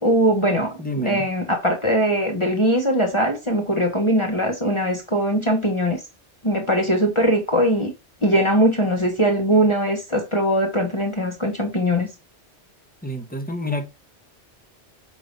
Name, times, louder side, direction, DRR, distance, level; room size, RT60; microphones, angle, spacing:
voice 1, 0.0-6.0 6.4-7.9 8.2-12.1, equal, 25° left, 1.3 m, -21 dB
voice 2, 0.8-1.3 13.0-13.9, left 1 dB, 10° left, 1.2 m, -28 dB
8.3 x 2.9 x 5.3 m
omnidirectional pair, 1.2 m